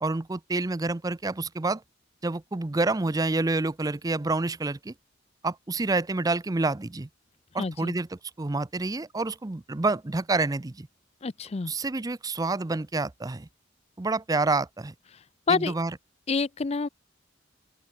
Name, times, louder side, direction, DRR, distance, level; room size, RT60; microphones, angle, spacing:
voice 1, 0.0-1.8 2.2-4.9 5.4-7.1 7.5-10.9 11.7-13.5 14.0-14.9 15.5-16.0, right 3 dB, 20° right, 0.5 m, -28 dB
voice 2, 7.6-7.9 11.2-11.7 15.5-15.7 16.3-16.9, left 4 dB, 30° left, 0.5 m, -27 dB
open air
head